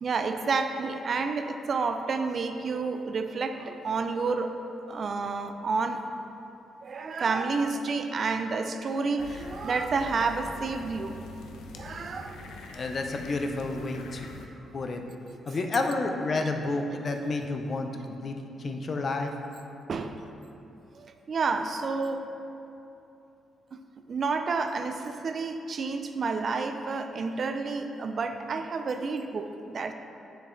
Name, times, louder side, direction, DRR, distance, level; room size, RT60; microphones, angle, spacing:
voice 1, 0.0-4.6 4.9-6.0 6.8-11.2 11.8-12.5 15.5-15.6 19.9-20.2 20.9-22.3 24.1-29.9, right 4 dB, 40° right, 7 dB, 0.3 m, -30 dB
sound 1, 9.2-14.5, left 3 dB, 90° left, 0.6 m, -44 dB
voice 2, 12.7-14.3 14.7-15.0 15.5-19.3, left 3 dB, 35° left, 4 dB, 0.5 m, -30 dB
7.8 x 6.8 x 3.2 m, 2.8 s
cardioid pair, 145°, 0 cm